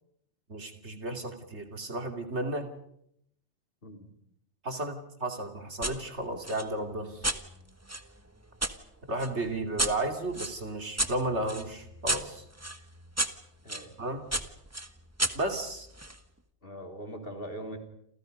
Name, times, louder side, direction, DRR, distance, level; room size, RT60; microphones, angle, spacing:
voice 1, 0.5-2.7 4.6-7.3 9.1-12.4 14.0-14.2 15.3-15.9, right 1 dB, 70° right, 5 dB, 3.1 m, -33 dB
sound 1, 5.8-6.0 6.4-8.7 9.2-13.9 14.3-16.2, right 1 dB, 15° right, 1.4 m, -33 dB
voice 2, 13.6-14.0 16.6-17.8, equal, 50° left, 4 dB, 3.7 m, -41 dB
29.5 x 27.5 x 5.3 m, 0.73 s
omnidirectional pair, 1.2 m